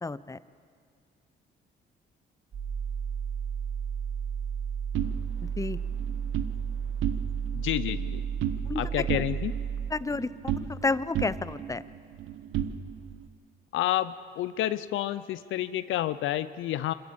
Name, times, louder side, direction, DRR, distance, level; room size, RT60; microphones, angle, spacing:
voice 1, 0.0-0.4 5.6-5.8 8.6-9.1 9.9-11.8, left 3 dB, 15° left, 16 dB, 0.7 m, -31 dB
sound 1, 2.5-9.9, right 7 dB, 60° right, 3.5 m, -33 dB
sound 2, 4.9-6.5 6.9-7.6 7.8-8.8 9.1-10.9 11.1-13.2, right 9 dB, 85° right, 1.0 m, -34 dB
voice 2, 7.5-8.2 8.8-9.6 13.7-16.9, left 13 dB, 80° left, 14 dB, 0.6 m, -29 dB
26.5 x 14.5 x 8.7 m, 2.2 s
cardioid pair, 90°, 20 cm